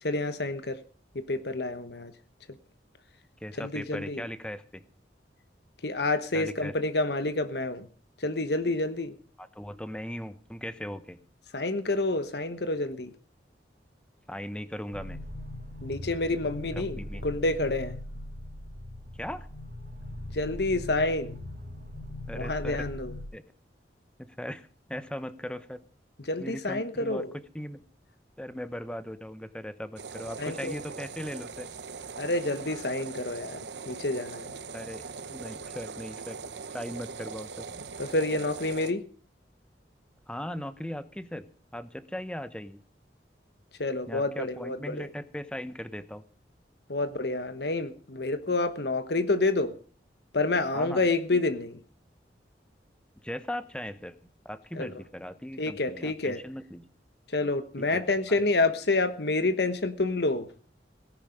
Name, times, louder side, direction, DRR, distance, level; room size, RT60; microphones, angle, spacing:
voice 1, 0.0-0.8 1.1-2.1 3.6-4.2 5.8-7.9 8.2-9.2 11.5-13.1 15.8-18.0 20.3-21.4 22.3-23.2 26.3-27.3 30.4-30.7 32.2-33.6 33.9-34.5 38.0-39.0 43.8-45.1 46.9-49.8 50.3-51.8 54.7-54.9 55.6-56.4 57.3-60.5, left 2 dB, 65° left, 11 dB, 1.2 m, -28 dB
voice 2, 3.4-4.8 6.3-6.7 9.4-11.2 14.3-15.2 16.8-17.2 19.2-19.5 22.3-22.8 23.3-23.4 24.4-25.8 26.4-27.3 27.5-27.8 28.4-31.7 34.7-35.0 35.3-36.4 36.7-37.7 40.3-41.5 41.7-42.8 44.1-46.2 50.7-51.0 53.2-54.2 54.4-56.9 57.8-58.0 58.3-58.5, equal, 5° left, 12 dB, 0.9 m, -38 dB
sound 1, 14.9-23.3, left 1 dB, 50° right, 3.1 m, -40 dB
sound 2, 30.0-38.9, right 5 dB, 75° right, 1.0 m, -41 dB
17.5 x 10.5 x 5.2 m, 0.42 s
head